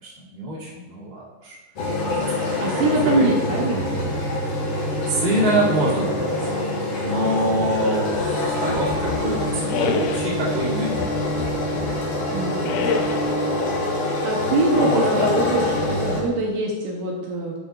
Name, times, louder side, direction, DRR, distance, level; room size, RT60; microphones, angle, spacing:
voice 1, 0.0-1.6 2.1-2.3 2.7-3.4 5.1-6.3 7.0-11.0 14.7-15.5, right 1 dB, 20° right, -8 dB, 2.0 m, -25 dB
sound 1, 1.8-16.2, left 1 dB, 50° left, 3.3 m, -25 dB
voice 2, 2.6-3.8 12.3-12.9 14.2-17.6, right 1 dB, 75° right, -1 dB, 2.3 m, -23 dB
sound 2, 8.9-10.4 10.9-12.1 12.6-13.4, left 6 dB, 80° left, 1.9 m, -29 dB
10.5 x 8.1 x 2.4 m, 1.2 s
omnidirectional pair, 4.1 m